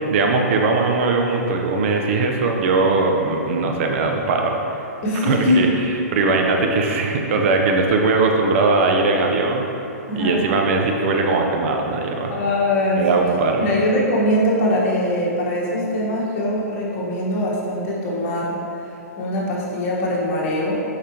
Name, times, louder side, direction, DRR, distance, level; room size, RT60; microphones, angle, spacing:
voice 1, 0.0-4.5 5.1-5.7 6.1-9.7 10.1-12.3 13.0-13.7, right 3 dB, 50° right, 2 dB, 0.8 m, -20 dB
voice 2, 5.0-5.7 10.1-10.4 12.3-13.2 13.6-18.6 19.2-20.8, left 1 dB, 45° left, -5 dB, 1.5 m, -22 dB
6.7 x 4.9 x 3.0 m, 2.8 s
hypercardioid pair, 125°, 9 cm